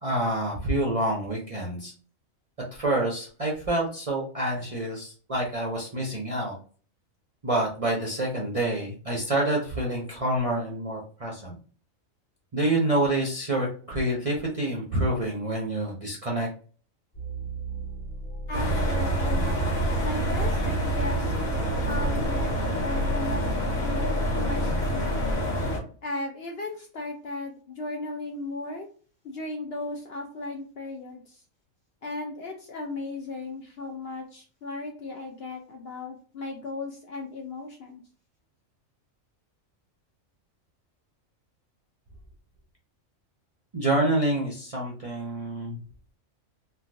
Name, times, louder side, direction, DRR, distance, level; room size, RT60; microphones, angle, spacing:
voice 1, 0.0-1.9 2.7-6.6 7.4-11.5 12.5-16.5 43.7-45.8, right 1 dB, 40° right, -3 dB, 0.5 m, -27 dB
sound 1, 17.1-25.3, right 1 dB, 35° left, 1.6 m, -34 dB
sound 2, 18.5-25.8, equal, 85° left, 1.4 m, -27 dB
voice 2, 18.5-19.5 20.0-21.3 21.8-22.5 22.8-23.4 23.8-25.3 26.0-28.9 29.2-31.4 32.0-38.0, left 2 dB, 65° left, 1 dB, 0.6 m, -36 dB
3.1 x 2.3 x 2.6 m, 0.41 s
omnidirectional pair, 1.4 m